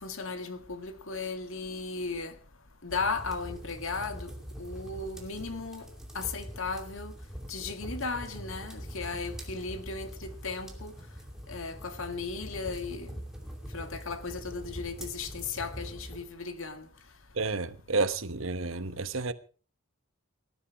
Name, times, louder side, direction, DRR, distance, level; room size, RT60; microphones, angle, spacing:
voice 1, 0.0-2.3 2.8-4.3 4.6-5.8 6.1-7.1 7.5-10.9 11.5-13.2 13.7-16.9, left 4 dB, 70° left, 1.8 m, -36 dB
sound 1, 2.9-16.2, equal, ahead, 2.6 m, -43 dB
voice 2, 17.3-19.3, right 3 dB, 65° right, 1.1 m, -30 dB
18.5 x 12.0 x 4.6 m
head